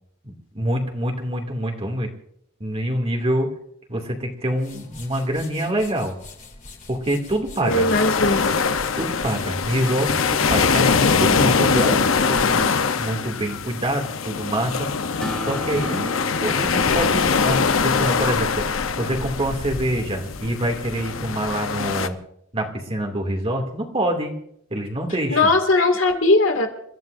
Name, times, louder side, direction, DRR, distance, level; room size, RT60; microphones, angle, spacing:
voice 1, 0.2-2.1 2.6-3.5 3.9-6.1 6.9-7.9 8.9-12.0 12.3-14.9 15.5-18.6 19.0-22.2 22.5-24.4 24.7-25.5, right 1 dB, 30° right, 2 dB, 2.4 m, -25 dB
sound 1, 4.4-13.7, left 3 dB, 40° left, 2.9 m, -42 dB
voice 2, 7.6-8.5 25.3-26.7, left 2 dB, 75° left, 5 dB, 2.3 m, -19 dB
sound 2, 7.7-22.1, left 5 dB, 90° left, 0.8 m, -22 dB
Acoustic guitar, 15.2-18.9, right 1 dB, 5° left, 2.1 m, -36 dB
29.5 x 14.5 x 2.6 m, 0.71 s
head